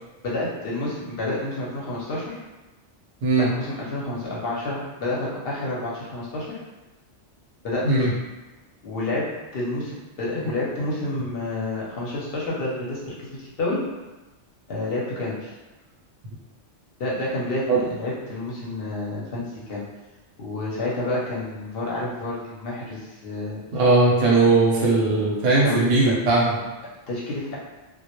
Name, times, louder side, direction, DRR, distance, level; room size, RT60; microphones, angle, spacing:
voice 1, 0.2-2.4 3.4-6.6 7.6-8.1 8.8-9.3 9.5-13.8 14.7-15.5 17.0-19.8 20.4-23.6 25.6-26.1 27.1-27.6, left 2 dB, 60° left, -5 dB, 0.7 m, -29 dB
voice 2, 23.7-26.5, right 3 dB, 80° right, -5 dB, 0.9 m, -19 dB
2.1 x 2.0 x 2.8 m, 1.1 s
omnidirectional pair, 1.2 m